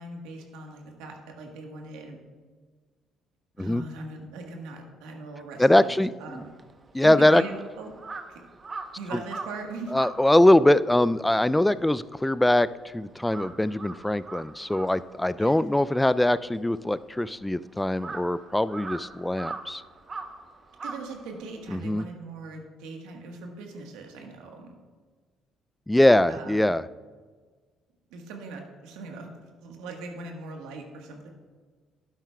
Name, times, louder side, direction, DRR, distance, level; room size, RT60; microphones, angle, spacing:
voice 1, 0.0-2.2 3.6-5.9 6.2-6.5 7.0-7.9 8.3-8.4 8.9-10.0 15.4-15.6 20.8-24.7 26.3-26.7 28.1-29.3 29.6-31.3, right 3 dB, 85° right, 2 dB, 1.3 m, -40 dB
voice 2, 5.6-6.4 6.9-7.4 9.1-9.2 9.9-19.8 21.7-22.1 25.9-26.8, left 1 dB, 10° left, 17 dB, 0.3 m, -22 dB
Crow, 6.3-12.8 13.1-21.8, right 3 dB, 35° right, 0.9 m, -42 dB
11.5 x 9.2 x 2.3 m, 1.5 s
supercardioid pair, 65°, 0 cm